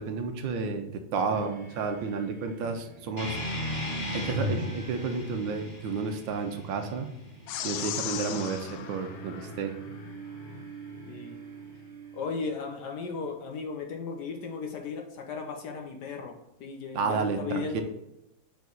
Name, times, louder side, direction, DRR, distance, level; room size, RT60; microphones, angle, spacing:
voice 1, 0.0-3.4 4.1-7.1 7.6-9.8 16.9-17.8, right 5 dB, 75° right, 6 dB, 1.4 m, -31 dB
sound 1, 1.3-13.4, right 3 dB, 35° right, 0.8 m, -47 dB
sound 2, 3.2-8.2, left 1 dB, 25° left, 1.5 m, -35 dB
sound 3, 7.5-10.1, left 10 dB, 80° left, 1.3 m, -37 dB
voice 2, 11.1-11.4 12.1-17.8, left 5 dB, 60° left, 2 dB, 1.3 m, -36 dB
5.2 x 4.7 x 3.9 m, 0.88 s
omnidirectional pair, 2.2 m